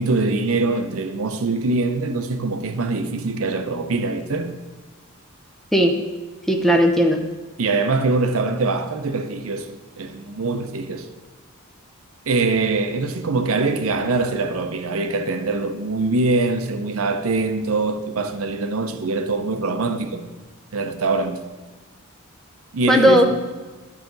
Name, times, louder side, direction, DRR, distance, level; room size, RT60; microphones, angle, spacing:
voice 1, 0.0-4.5 7.6-11.1 12.3-20.2 20.7-21.4 22.7-23.3, right 3 dB, 70° right, 0.7 m, -23 dB
voice 2, 6.5-7.2 22.9-23.3, equal, ahead, 0.6 m, -16 dB
12.5 x 4.9 x 3.9 m
head